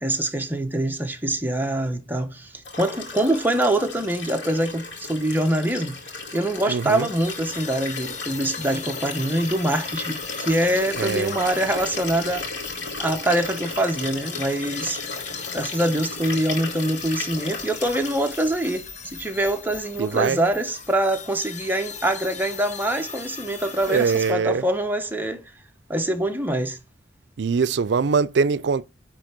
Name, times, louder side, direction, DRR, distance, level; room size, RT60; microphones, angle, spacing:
voice 1, 0.0-6.0 6.3-12.5 13.0-15.0 15.5-25.4 25.9-26.8, right 1 dB, 10° right, 1.0 m, -24 dB
Liquid, 2.6-18.7 20.0-20.1, left 4 dB, 70° left, 2.3 m, -35 dB
sound 1, 6.5-24.3, left 6 dB, 40° left, 1.1 m, -39 dB
voice 2, 6.7-7.1 11.0-11.4 20.0-20.4 23.9-24.7 27.4-28.8, right 5 dB, 70° right, 0.4 m, -22 dB
10.0 x 3.4 x 6.6 m
head